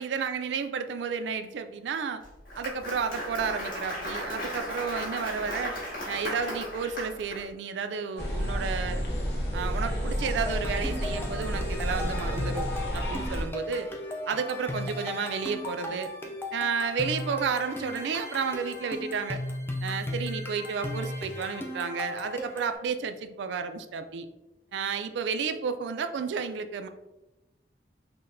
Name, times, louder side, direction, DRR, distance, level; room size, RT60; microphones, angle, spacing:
voice 1, 0.0-2.2 2.6-5.7 6.1-9.0 9.5-12.7 12.9-13.9 14.3-16.1 16.5-19.4 19.8-24.3 24.7-26.9, right 6 dB, 80° right, 9 dB, 0.3 m, -32 dB
Applause, 2.2-7.4, equal, 50° left, 1.4 m, -36 dB
sound 1, 8.2-13.4, equal, 70° left, 0.8 m, -30 dB
sound 2, 10.5-22.8, left 1 dB, 10° left, 0.3 m, -36 dB
5.7 x 2.2 x 2.5 m, 1.0 s
head